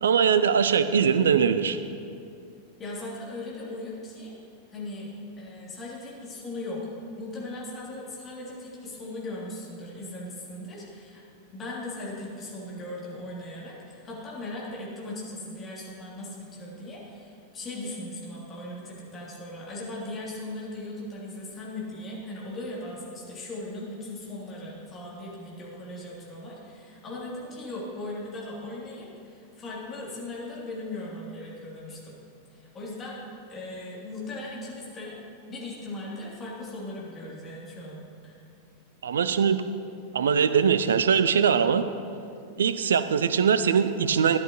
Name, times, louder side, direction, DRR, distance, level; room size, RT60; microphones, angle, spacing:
voice 1, 0.0-1.8 39.0-39.6 40.1-41.9 42.6-44.4, right 7 dB, 65° right, 12 dB, 0.4 m, -22 dB
voice 2, 2.8-4.4 4.7-5.1 5.4-6.9 7.2-11.2 11.5-32.2 32.5-33.2 33.5-35.2 35.5-38.3, left 1 dB, 25° left, -5 dB, 2.9 m, -38 dB
13.5 x 10.5 x 3.0 m, 2.5 s
figure-of-eight pair, 90°, 0 cm